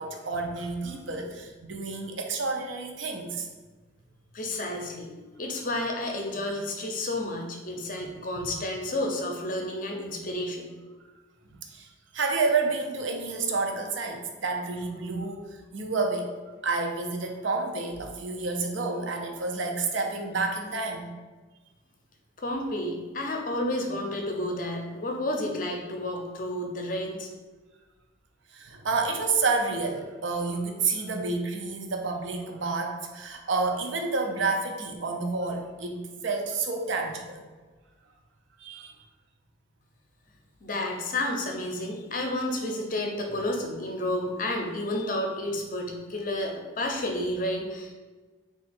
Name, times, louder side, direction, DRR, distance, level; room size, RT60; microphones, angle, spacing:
voice 1, 0.0-3.5 8.0-8.1 11.7-16.3 16.6-21.1 28.5-37.4 38.6-39.0, right 3 dB, 75° right, 3 dB, 0.6 m, -29 dB
voice 2, 4.3-5.1 5.4-10.8 22.4-27.3 40.6-47.9, left 1 dB, 45° left, 2 dB, 0.6 m, -31 dB
3.8 x 2.4 x 4.2 m, 1.3 s
head